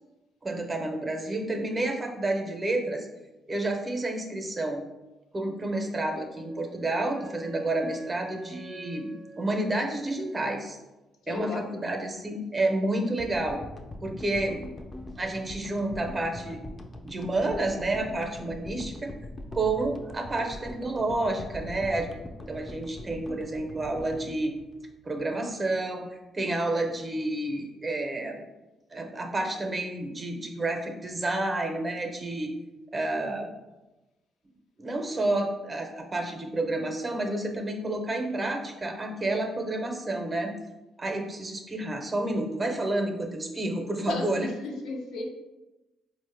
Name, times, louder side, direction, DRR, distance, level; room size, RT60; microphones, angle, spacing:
voice 1, 0.4-3.1 3.5-4.9 5.3-9.1 9.4-10.8 11.3-13.6 14.0-14.7 15.2-16.6 17.0-19.1 19.5-22.1 22.5-24.5 25.1-28.4 28.9-32.5 32.9-33.5 34.8-40.5 41.0-44.5, right 2 dB, 25° right, 3 dB, 0.5 m, -30 dB
Wind instrument woodwind instrument, 6.1-10.8, right 2 dB, 80° right, 0.4 m, -48 dB
voice 2, 11.2-11.7 44.0-45.3, left 3 dB, 85° left, 2 dB, 0.5 m, -34 dB
sound 1, 13.2-25.5, left 1 dB, 25° left, 0.4 m, -42 dB
4.0 x 2.1 x 3.2 m, 1.0 s
cardioid pair, 90°, 0 cm